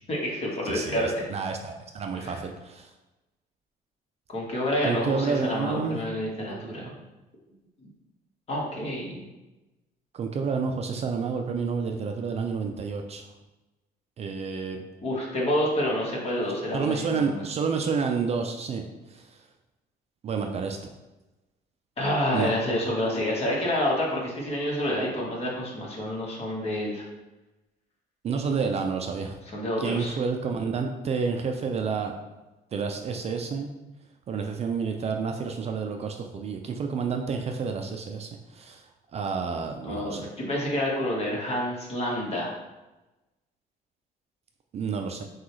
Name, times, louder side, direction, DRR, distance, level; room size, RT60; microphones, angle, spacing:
voice 1, 0.1-1.1 2.1-2.4 4.3-6.9 7.8-7.9 8.5-9.3 15.0-17.4 22.0-27.0 29.4-30.2 39.8-42.5, left 1 dB, 35° left, -3 dB, 1.3 m, -28 dB
voice 2, 0.7-2.9 4.8-6.0 6.5-6.8 10.1-13.2 14.2-14.8 16.7-18.8 19.1-19.2 20.2-20.8 22.3-22.5 28.2-29.4 29.8-32.1 32.7-33.7 34.3-38.8 39.1-40.2 44.7-45.2, right 5 dB, 40° right, 4 dB, 0.4 m, -29 dB
6.0 x 2.4 x 3.1 m, 1.0 s
cardioid pair, 110°, 17 cm